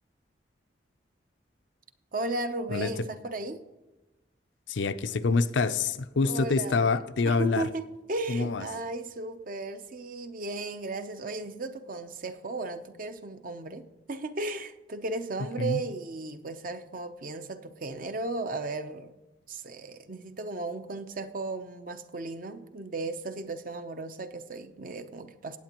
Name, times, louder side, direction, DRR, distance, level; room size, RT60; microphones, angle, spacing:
voice 1, 2.1-3.6 6.2-7.0 7.2-19.1 19.5-25.6, right 2 dB, 45° right, 0.7 m, -35 dB
voice 2, 4.7-7.7 8.3-8.6 15.6-15.8, left 4 dB, 75° left, 0.5 m, -26 dB
17.5 x 8.4 x 3.0 m
head